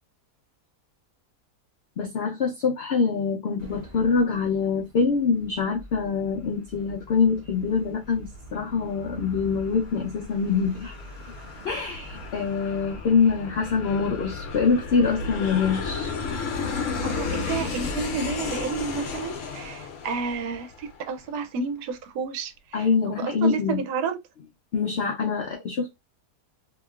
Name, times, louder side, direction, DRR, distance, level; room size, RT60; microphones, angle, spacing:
voice 1, 2.0-11.0 11.6-16.1 22.7-23.8 24.7-25.9, left 5 dB, 80° left, 0.5 m, -24 dB
sound 1, 3.6-19.1, right 1 dB, 45° right, 0.5 m, -46 dB
Aircraft, 8.0-21.2, left 5 dB, 60° left, 0.9 m, -34 dB
voice 2, 17.0-22.9 23.2-24.2, right 5 dB, 75° right, 1.1 m, -31 dB
3.0 x 2.7 x 2.3 m
omnidirectional pair, 1.8 m